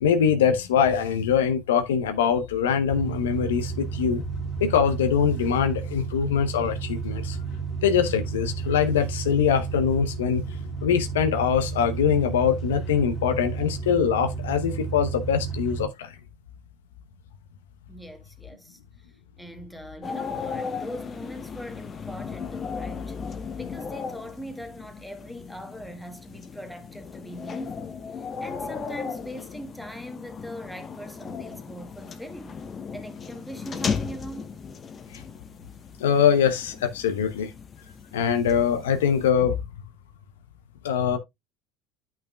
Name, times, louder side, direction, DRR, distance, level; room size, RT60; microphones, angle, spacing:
voice 1, 0.0-4.2 4.6-7.4 7.8-10.4 10.8-16.2 35.1-35.2 36.0-37.5 38.1-39.6 40.8-41.2, left 7 dB, 85° left, 0.8 m, -23 dB
sound 1, 2.9-15.9, right 6 dB, 55° left, 2.1 m, -32 dB
voice 2, 17.9-19.1 19.4-32.6 32.9-34.6, equal, ahead, 1.7 m, -41 dB
sound 2, 20.0-39.3, left 5 dB, 35° left, 1.0 m, -36 dB
10.5 x 5.9 x 2.2 m
hypercardioid pair, 75°, 0 cm